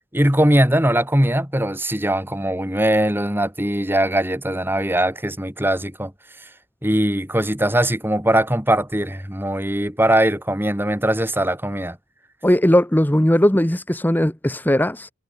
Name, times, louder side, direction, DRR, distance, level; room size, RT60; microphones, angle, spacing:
voice 1, 0.1-6.1 6.8-12.0, right 1 dB, 10° right, 5.1 m, -20 dB
voice 2, 12.4-15.1, left 1 dB, 10° left, 1.0 m, -18 dB
head